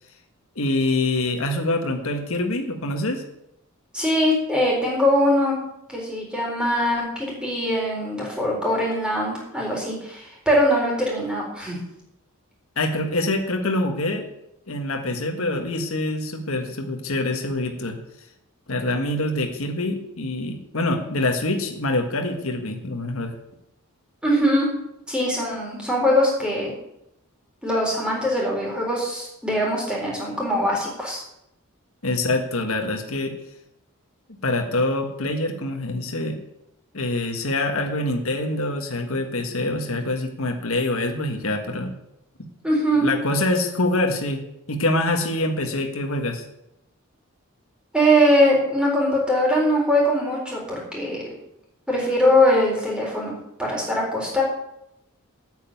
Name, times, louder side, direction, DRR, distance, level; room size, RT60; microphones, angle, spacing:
voice 1, 0.5-3.2 12.8-14.2 14.7-18.0 18.7-23.3 32.0-33.3 34.4-36.4 36.9-41.9 42.9-44.4 44.7-46.4, left 2 dB, 70° left, 4 dB, 1.6 m, -25 dB
voice 2, 3.9-5.6 5.9-11.8 24.2-24.7 25.1-26.7 27.6-31.2 42.6-43.0 47.9-51.4 51.9-53.3 53.6-54.4, equal, 5° right, -3 dB, 4.2 m, -22 dB
9.0 x 8.0 x 9.2 m, 0.81 s
head